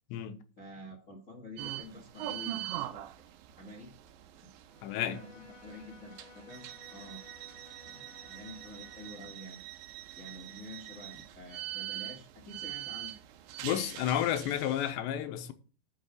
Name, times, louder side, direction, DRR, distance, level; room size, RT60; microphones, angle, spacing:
voice 1, 0.6-3.0 3.6-3.9 4.9-7.2 7.9-9.6 10.1-13.1, left 1 dB, 45° left, 1.0 m, -48 dB
sound 1, 1.6-14.9, right 14 dB, 85° right, 3.1 m, -43 dB
Bowed string instrument, 4.6-9.6, left 5 dB, 65° left, 3.5 m, -57 dB
voice 2, 4.8-5.2 13.6-15.5, left 11 dB, 85° left, 3.1 m, -31 dB
7.7 x 6.3 x 7.9 m
omnidirectional pair, 5.1 m